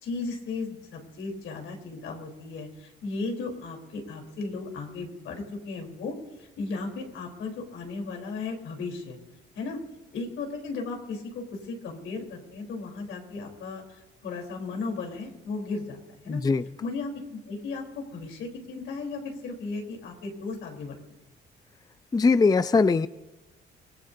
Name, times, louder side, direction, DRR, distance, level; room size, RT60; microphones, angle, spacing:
voice 1, 0.0-9.2 9.6-9.8 10.1-16.4 16.8-17.1 17.5-21.0, left 3 dB, 80° left, 2 dB, 3.7 m, -35 dB
voice 2, 16.3-16.6 22.1-23.1, left 4 dB, 20° left, 13 dB, 0.5 m, -21 dB
25.0 x 18.5 x 2.7 m, 1.1 s
cardioid pair, 90°, 20 cm